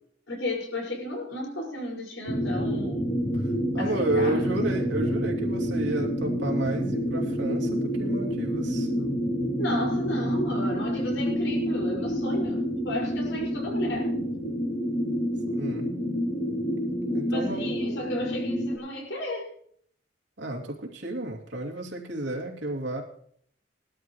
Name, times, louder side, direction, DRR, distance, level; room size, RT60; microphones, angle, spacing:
voice 1, 0.3-3.2 3.8-4.5 9.6-14.2 17.1-19.5, left 1 dB, 85° left, 0 dB, 5.8 m, -34 dB
sound 1, 2.3-18.8, equal, 65° left, 4.8 m, -28 dB
voice 2, 3.7-8.9 15.5-16.0 17.1-17.7 20.4-23.0, right 2 dB, 80° right, -1 dB, 2.8 m, -31 dB
19.5 x 12.5 x 3.2 m, 0.64 s
head